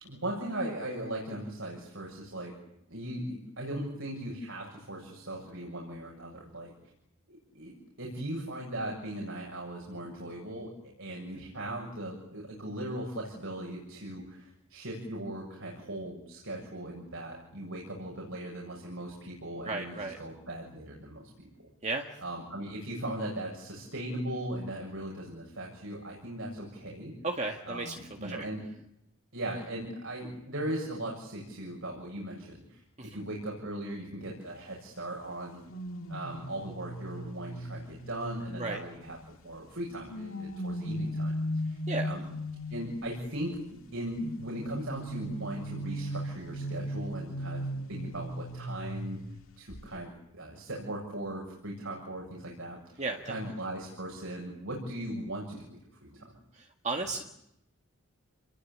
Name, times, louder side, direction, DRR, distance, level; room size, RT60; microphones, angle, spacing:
voice 1, 0.0-2.5 2.9-6.7 7.3-21.5 22.2-27.1 27.7-28.6 29.3-35.6 36.1-39.2 39.4-41.3 41.6-42.2 42.7-49.2 49.6-56.2, right 1 dB, 70° right, -1 dB, 7.4 m, -38 dB
voice 2, 19.6-20.2 21.8-22.1 27.2-28.0 28.2-28.5 33.0-33.1 38.6-38.8 41.9-42.1 53.0-53.3 56.5-57.2, right 3 dB, 30° right, 3 dB, 1.8 m, -34 dB
sound 1, 35.7-39.3 39.9-43.2 44.2-49.4 49.7-50.0, equal, 75° left, 2.0 m, -37 dB
29.0 x 21.5 x 8.6 m, 0.82 s
head